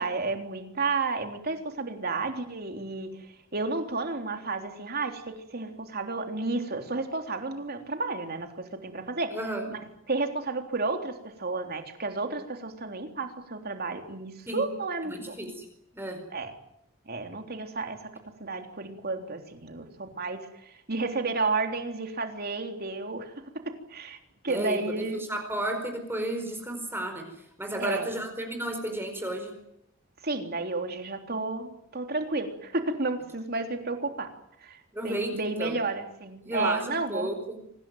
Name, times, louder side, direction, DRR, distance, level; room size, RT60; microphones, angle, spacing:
voice 1, 0.0-3.3 3.5-9.4 9.7-9.8 10.1-15.3 16.3-16.5 17.1-18.1 18.4-20.4 20.9-24.2 24.4-25.2 27.8-28.1 30.2-34.3 34.6-34.8 35.0-37.3, right 3 dB, 50° right, 5 dB, 3.6 m, -32 dB
voice 2, 9.3-9.7 14.5-14.6 15.0-15.7 15.9-16.2 24.5-24.8 25.1-27.3 27.6-29.5 34.9-35.7 36.4-37.6, right 1 dB, 10° right, 4 dB, 4.8 m, -32 dB
25.5 x 19.5 x 9.2 m, 0.76 s
head